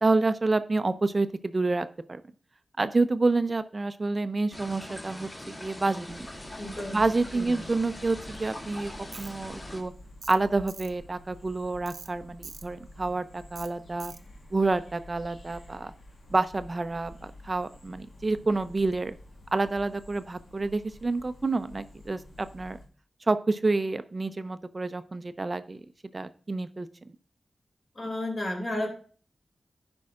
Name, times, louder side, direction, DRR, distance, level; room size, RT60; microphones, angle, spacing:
voice 1, 0.0-2.2 2.8-6.1 6.8-8.9 9.2-9.9 10.3-14.1 14.5-15.9 16.3-19.2 19.5-22.8 23.3-25.9 26.1-27.1, right 3 dB, 30° right, 11 dB, 0.5 m, -28 dB
sound 1, 4.5-9.8, left 1 dB, 25° left, 2.4 m, -42 dB
voice 2, 5.9-6.2 6.6-7.0 7.3-7.6 27.9-28.9, left 1 dB, 40° left, 1 dB, 2.6 m, -33 dB
sound 2, 6.1-22.9, left 1 dB, 85° left, 1.8 m, -50 dB
Tools, 9.1-9.3 10.2-10.4 10.7-10.9 11.9-12.1 12.4-12.7 13.6-13.7 14.0-14.2, right 5 dB, 85° right, 0.6 m, -43 dB
15.5 x 5.2 x 2.5 m, 0.42 s
wide cardioid pair, 135°, 0 cm